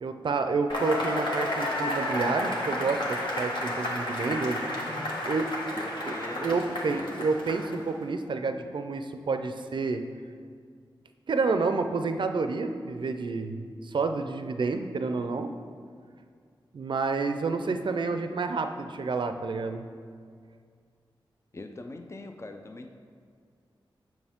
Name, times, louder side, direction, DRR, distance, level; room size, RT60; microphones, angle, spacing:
voice 1, 0.0-4.6 5.2-5.6 6.1-6.2 6.4-10.1 11.3-15.5 16.7-19.9, right 4 dB, 60° right, 8 dB, 0.5 m, -29 dB
Cheering / Applause / Crowd, 0.7-7.9, left 1 dB, 60° left, 1.3 m, -31 dB
voice 2, 5.8-7.3 21.5-22.9, left 2 dB, 30° left, 5 dB, 0.5 m, -42 dB
7.1 x 6.0 x 3.6 m, 2.1 s
cardioid pair, 55°, 9 cm